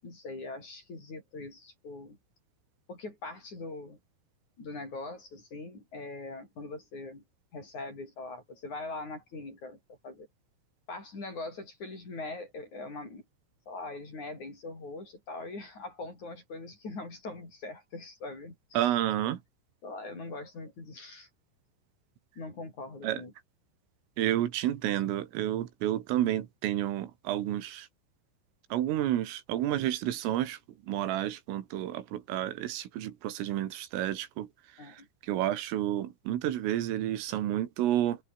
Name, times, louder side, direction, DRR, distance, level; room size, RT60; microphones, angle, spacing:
voice 1, 0.0-2.2 2.9-4.0 4.6-7.2 7.5-9.8 10.0-10.3 10.9-13.2 13.7-19.0 19.8-21.3 22.4-23.3 34.8-35.1, left 3 dB, 35° left, 9.0 m, -42 dB
voice 2, 18.8-19.4 23.0-23.2 24.2-27.9 28.7-30.6 30.9-34.5 35.3-38.2, right 12 dB, 90° right, 4.7 m, -30 dB
open air
omnidirectional pair, 5.7 m